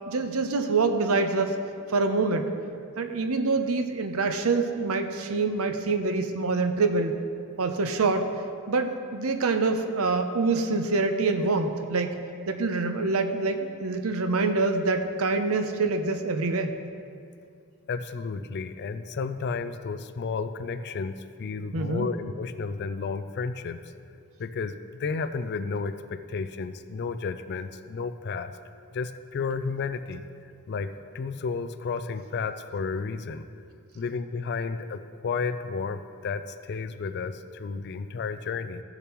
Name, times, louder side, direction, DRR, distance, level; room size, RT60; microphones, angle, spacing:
voice 1, 0.1-1.6 1.9-2.5 3.0-7.2 7.6-8.3 8.7-12.2 12.5-16.7 21.7-22.1, right 3 dB, 70° right, 7 dB, 0.7 m, -25 dB
voice 2, 17.9-23.8 24.4-28.5 28.9-30.2 30.7-33.4 33.9-38.8, left 4 dB, 50° left, 11 dB, 0.4 m, -32 dB
15.5 x 6.7 x 3.0 m, 2.4 s
head